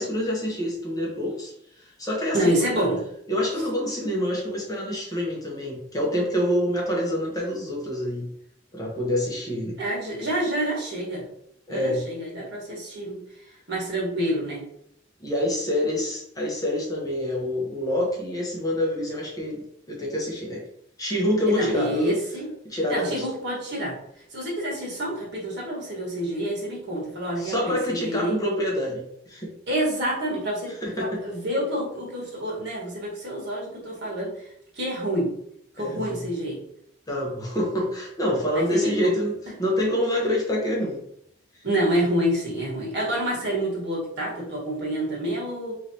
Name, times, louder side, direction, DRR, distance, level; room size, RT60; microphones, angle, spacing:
voice 1, 0.0-2.9 3.3-8.3 8.7-9.8 11.7-12.0 15.2-20.6 21.0-22.2 22.6-23.2 27.4-29.5 30.8-31.2 35.8-36.2 37.1-41.0, left 1 dB, 20° left, -2 dB, 0.9 m, -27 dB
voice 2, 2.3-3.0 9.8-11.2 11.7-13.2 13.7-14.6 21.4-22.5 22.9-24.0 24.3-28.4 29.7-34.5 34.7-35.3 35.7-36.6 38.5-39.1 41.6-45.7, right 1 dB, 65° right, -4 dB, 1.5 m, -28 dB
3.7 x 3.2 x 2.8 m, 0.72 s
head